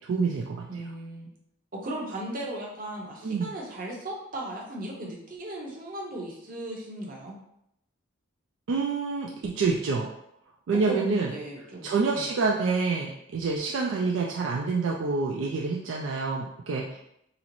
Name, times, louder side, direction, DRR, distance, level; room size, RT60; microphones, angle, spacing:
voice 1, 0.1-0.7 3.2-3.5 8.7-10.1 10.7-11.3 11.8-17.0, right 4 dB, 60° right, -1 dB, 0.3 m, -27 dB
voice 2, 0.7-1.3 1.7-7.4 10.7-12.3, right 1 dB, 40° right, -2 dB, 0.7 m, -37 dB
3.8 x 2.0 x 3.0 m, 0.77 s
head